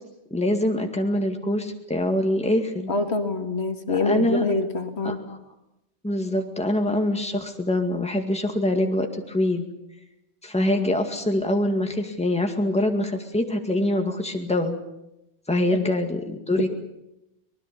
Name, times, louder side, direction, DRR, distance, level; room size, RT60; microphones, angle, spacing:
voice 1, 0.3-2.9 4.0-4.5 5.0-5.4 6.0-9.7 10.4-14.8 15.5-16.7, left 1 dB, 5° left, 4 dB, 2.1 m, -24 dB
voice 2, 2.9-5.2 16.6-16.7, left 3 dB, 60° left, 6 dB, 2.1 m, -25 dB
25.0 x 19.5 x 7.0 m, 0.89 s
omnidirectional pair, 1.2 m